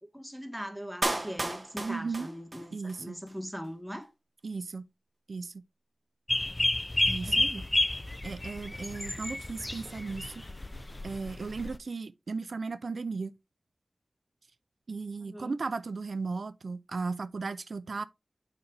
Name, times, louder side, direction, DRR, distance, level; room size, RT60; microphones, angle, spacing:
voice 1, 0.0-4.1 7.2-7.5 15.2-15.6, equal, ahead, 1.6 m, -41 dB
Clapping, 1.0-3.0 3.3-3.4, right 2 dB, 35° right, 1.1 m, -34 dB
voice 2, 1.8-2.3 2.7-3.2 4.4-4.8 5.3-5.6 7.1-7.6 8.2-10.4 11.0-13.3 14.9-18.0, right 4 dB, 80° right, 0.3 m, -36 dB
sound 1, 6.3-11.8, left 1 dB, 30° left, 0.5 m, -31 dB
6.8 x 5.4 x 3.3 m
cardioid pair, 45°, 0 cm